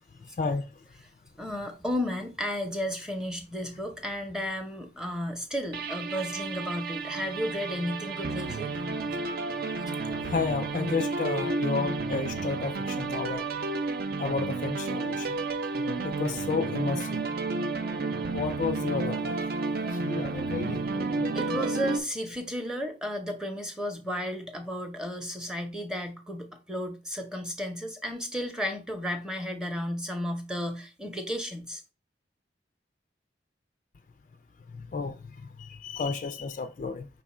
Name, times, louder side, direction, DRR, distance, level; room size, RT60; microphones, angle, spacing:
voice 1, 0.2-0.7 10.2-13.4 14.2-15.4 15.8-17.2 18.3-19.4 19.8-21.7 34.7-37.1, left 4 dB, 40° left, 0.3 m, -32 dB
voice 2, 1.4-8.7 21.3-31.8, equal, 5° right, 0.7 m, -33 dB
sound 1, 5.7-22.0, right 3 dB, 55° right, 0.5 m, -31 dB
5.4 x 2.3 x 4.2 m
head